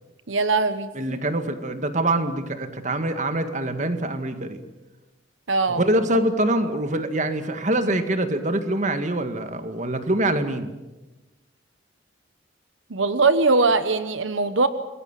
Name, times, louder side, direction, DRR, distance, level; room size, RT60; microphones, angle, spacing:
voice 1, 0.3-1.2 5.5-5.8 12.9-14.7, right 3 dB, 85° right, 12 dB, 1.1 m, -21 dB
voice 2, 0.9-4.6 5.7-10.7, right 1 dB, 40° right, 8 dB, 2.0 m, -24 dB
27.5 x 21.5 x 7.5 m, 1.1 s
head